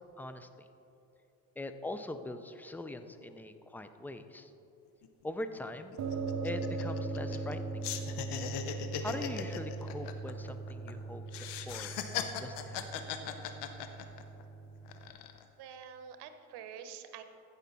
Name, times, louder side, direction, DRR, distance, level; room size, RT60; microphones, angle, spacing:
voice 1, 0.2-0.7 1.6-4.5 5.2-6.0 6.4-7.9 9.0-11.2 11.7-13.0, left 2 dB, 5° left, 9 dB, 0.5 m, -42 dB
sound 1, 5.0-5.1 5.4-5.6 5.9-7.5 7.8-10.9 11.3-14.4 14.9-15.4, left 9 dB, 70° left, 0.9 m, -39 dB
sound 2, 6.0-15.1, right 3 dB, 40° right, 0.9 m, -40 dB
voice 2, 15.6-17.2, right 8 dB, 65° right, 8 dB, 1.0 m, -47 dB
15.0 x 5.7 x 4.1 m, 2.8 s
supercardioid pair, 75°, 43 cm